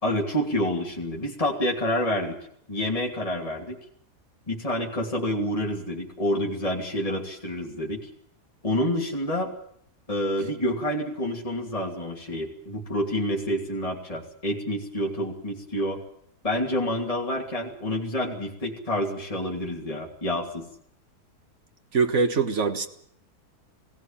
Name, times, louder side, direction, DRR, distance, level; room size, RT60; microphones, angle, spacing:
voice 1, 0.0-2.4 2.7-3.8 4.5-8.0 8.6-9.5 10.1-16.0 16.4-20.7, equal, 20° left, -1 dB, 3.0 m, -28 dB
voice 2, 21.9-22.9, right 4 dB, 50° right, 8 dB, 1.8 m, -23 dB
19.5 x 16.5 x 9.0 m, 0.69 s
omnidirectional pair, 1.7 m